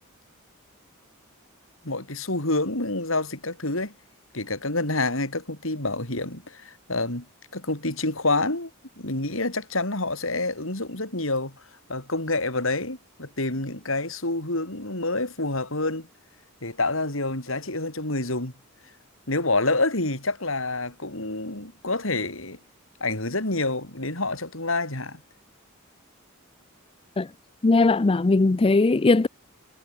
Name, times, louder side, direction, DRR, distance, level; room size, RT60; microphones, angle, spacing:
voice 1, 1.8-3.9 4.3-7.3 7.5-8.7 9.0-11.5 11.9-16.1 16.6-18.5 19.3-22.6 23.0-25.2, left 2 dB, 70° left, 5.9 m, -27 dB
voice 2, 27.6-29.3, left 3 dB, 25° left, 0.5 m, -19 dB
head